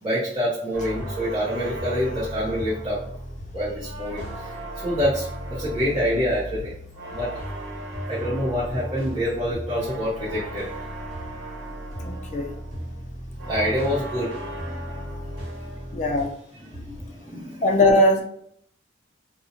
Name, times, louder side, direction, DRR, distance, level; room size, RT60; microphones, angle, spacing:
voice 1, 0.0-3.0 3.5-4.6 4.8-6.7 7.1-7.3 8.1-10.7 12.7-12.8 13.4-14.8 16.7-17.7, equal, 25° right, -9 dB, 0.6 m, -27 dB
sound 1, 0.7-16.4 16.7-17.2, equal, 85° right, 1.0 m, -35 dB
voice 2, 12.0-12.5 15.9-16.3 17.6-18.2, left 1 dB, 40° left, 3 dB, 0.4 m, -20 dB
2.4 x 2.0 x 2.7 m, 0.66 s
head